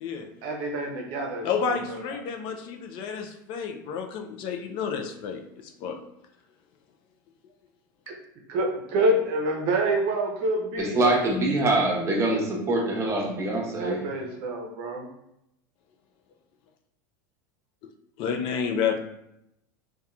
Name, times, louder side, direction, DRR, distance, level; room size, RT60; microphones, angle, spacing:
voice 1, 0.4-2.0 8.1-8.2 8.5-11.2 13.8-15.1, right 1 dB, 60° right, 1 dB, 0.6 m, -27 dB
voice 2, 1.4-6.0 18.2-19.0, left 7 dB, 50° left, 5 dB, 0.3 m, -30 dB
voice 3, 10.8-14.1, right 2 dB, 25° right, -1 dB, 0.8 m, -24 dB
2.8 x 2.2 x 2.3 m, 0.80 s
supercardioid pair, 105°, 11 cm